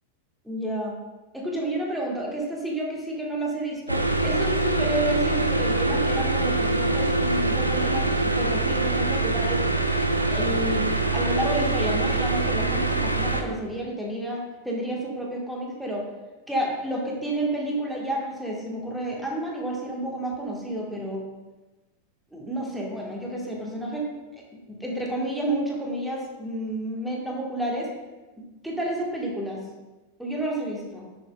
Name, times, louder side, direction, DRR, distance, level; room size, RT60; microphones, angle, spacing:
voice 1, 0.4-1.0 1.3-9.6 10.2-16.1 16.5-21.2 22.3-24.1 24.5-27.9 28.6-29.6 30.2-31.0, right 1 dB, ahead, -2 dB, 1.4 m, -30 dB
sound 1, 3.9-13.4, right 2 dB, 85° right, 0.5 m, -24 dB
6.9 x 6.2 x 2.3 m, 1.1 s
figure-of-eight pair, 90°, 0 cm